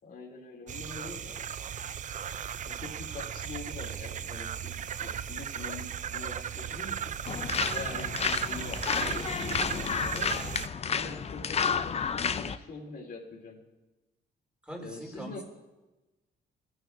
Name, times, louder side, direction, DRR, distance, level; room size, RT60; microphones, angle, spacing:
voice 1, 0.0-1.4 2.6-6.9 7.6-9.5 9.8-10.4 10.8-13.6 14.8-15.4, left 3 dB, 50° left, 0 dB, 2.7 m, -44 dB
sound 1, 0.7-10.7, right 8 dB, 40° right, 0.4 m, -36 dB
sound 2, 7.3-12.6, left 6 dB, 30° left, 0.5 m, -31 dB
voice 2, 14.6-15.4, equal, 5° right, 1 dB, 2.5 m, -42 dB
18.0 x 9.1 x 2.5 m, 1.1 s
cardioid pair, 90°, 20 cm